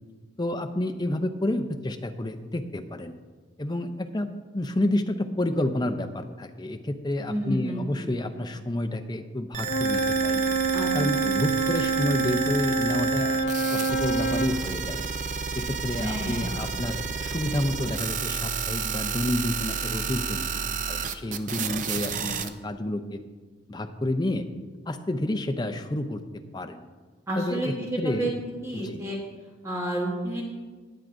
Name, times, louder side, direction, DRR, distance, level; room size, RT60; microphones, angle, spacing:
voice 1, 0.4-3.1 3.6-4.3 4.5-10.4 10.9-15.0 15.5-20.4 20.9-23.2 23.7-24.5 24.9-26.2 26.5-26.8 27.4-27.6 28.0-28.3 28.7-29.0, left 1 dB, 20° left, 7 dB, 0.5 m, -29 dB
voice 2, 7.3-8.3 10.7-10.9 16.0-16.6 27.3-28.3 28.6-29.2 29.6-30.4, right 1 dB, 15° right, -3 dB, 1.2 m, -30 dB
sound 1, 9.5-22.5, right 6 dB, 40° right, 0.5 m, -31 dB
Wind instrument woodwind instrument, 9.6-14.6, right 3 dB, 60° left, 1.2 m, -26 dB
19.0 x 7.4 x 2.6 m, 1.4 s
head